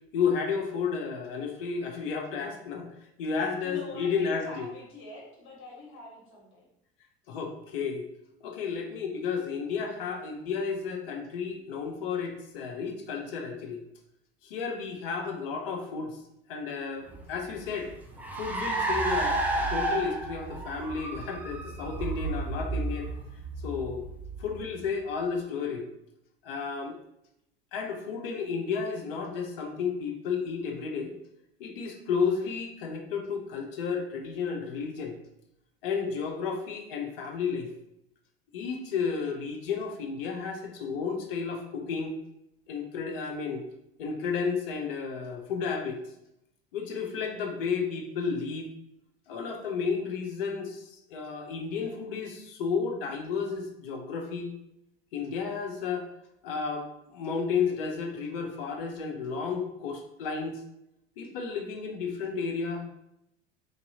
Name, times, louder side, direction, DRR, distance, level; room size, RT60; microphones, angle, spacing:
voice 1, 0.1-2.9 3.2-4.7 7.3-8.0 8.4-13.8 14.4-16.2 16.5-17.9 18.4-19.4 19.7-23.1 23.6-24.0 24.4-25.9 26.4-27.0 27.7-31.1 31.6-35.2 35.8-37.7 38.5-42.1 42.7-43.6 44.0-46.0 46.7-48.7 49.3-54.5 55.1-56.0 56.4-60.6 61.2-62.9, left 5 dB, 65° left, 2 dB, 0.6 m, -32 dB
voice 2, 3.6-6.6, left 2 dB, 40° left, -3 dB, 1.3 m, -44 dB
Car, 17.1-24.9, right 2 dB, 5° right, 0.4 m, -32 dB
3.1 x 2.7 x 2.7 m, 0.82 s
figure-of-eight pair, 65°, 30 cm